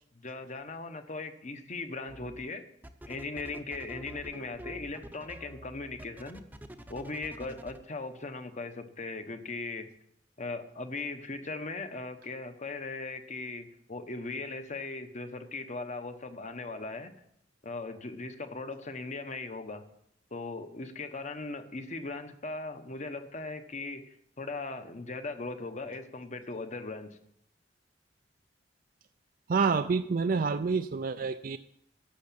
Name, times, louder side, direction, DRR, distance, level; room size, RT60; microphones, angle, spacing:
voice 1, 0.1-2.7 3.1-6.4 6.9-9.9 10.4-17.1 17.6-19.8 20.3-24.0 24.4-27.2, left 3 dB, 40° left, 9 dB, 1.1 m, -39 dB
sound 1, 2.1-2.5 2.8-7.8, equal, 10° right, 0.7 m, -47 dB
voice 2, 29.5-31.6, right 5 dB, 50° right, 10 dB, 0.4 m, -28 dB
11.5 x 7.1 x 8.6 m, 0.72 s
head